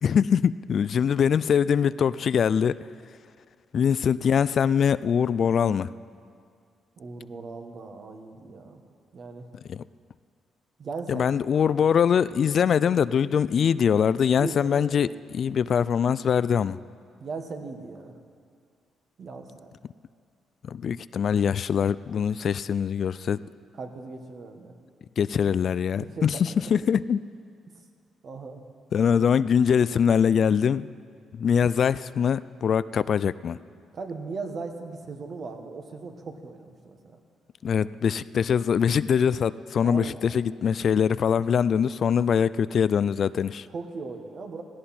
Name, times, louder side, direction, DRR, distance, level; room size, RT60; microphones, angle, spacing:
voice 1, 0.0-2.8 3.7-5.9 9.7-9.8 11.1-16.8 20.6-23.4 25.2-27.2 28.9-30.9 31.3-33.6 37.6-43.7, left 7 dB, 55° left, 17 dB, 0.3 m, -23 dB
voice 2, 7.0-8.8 9.1-9.5 10.8-11.7 14.4-14.9 17.2-18.1 19.2-19.7 23.7-24.7 26.0-26.7 28.2-28.6 33.9-37.2 39.8-40.2 43.7-44.6, right 4 dB, 55° right, 4 dB, 1.6 m, -38 dB
17.0 x 16.0 x 4.4 m, 2.2 s
cardioid pair, 90°, 0 cm